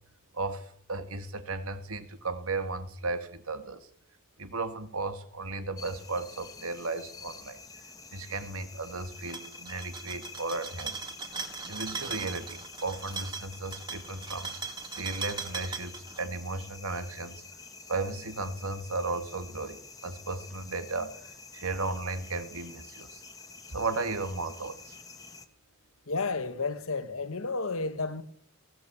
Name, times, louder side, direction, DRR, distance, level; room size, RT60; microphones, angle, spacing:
voice 1, 0.3-3.9 4.4-7.6 8.1-10.9 11.7-14.5 15.0-17.4 17.9-23.2 23.7-24.9, right 3 dB, 85° right, 2.0 m, -35 dB
sound 1, 5.8-25.5, left 4 dB, 15° left, 1.5 m, -49 dB
sound 2, 9.2-16.2, right 4 dB, 20° right, 1.9 m, -39 dB
voice 2, 26.1-28.2, left 3 dB, 80° left, 1.6 m, -31 dB
19.5 x 16.5 x 8.5 m
head